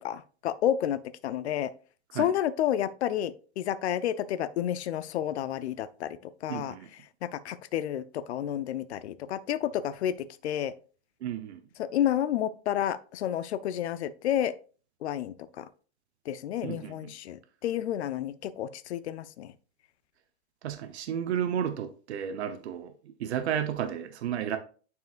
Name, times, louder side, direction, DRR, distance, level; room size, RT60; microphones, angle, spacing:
voice 1, 0.0-1.7 2.1-6.7 7.2-10.7 11.8-14.5 15.0-15.7 16.3-19.5, left 11 dB, 90° left, 0.6 m, -30 dB
voice 2, 6.5-6.9 11.2-11.6 16.6-17.0 20.6-22.9 23.2-24.6, right 9 dB, 80° right, 0.9 m, -32 dB
9.4 x 4.7 x 2.5 m
supercardioid pair, 180°, 32 cm